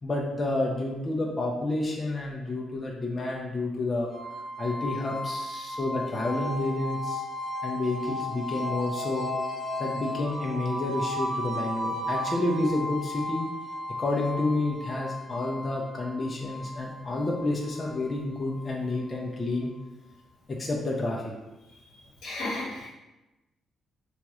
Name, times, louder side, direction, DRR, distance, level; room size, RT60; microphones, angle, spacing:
voice 1, 0.0-4.1 4.6-7.2 7.6-9.3 9.8-13.5 14.0-19.7 20.5-21.3, left 2 dB, 35° left, -2 dB, 0.5 m, -30 dB
sound 1, 4.1-19.0, left 1 dB, 10° right, 1.0 m, -35 dB
voice 2, 22.2-22.9, left 2 dB, 80° left, -5 dB, 0.9 m, -33 dB
2.9 x 2.3 x 2.9 m, 1.0 s
cardioid pair, 75°, 0 cm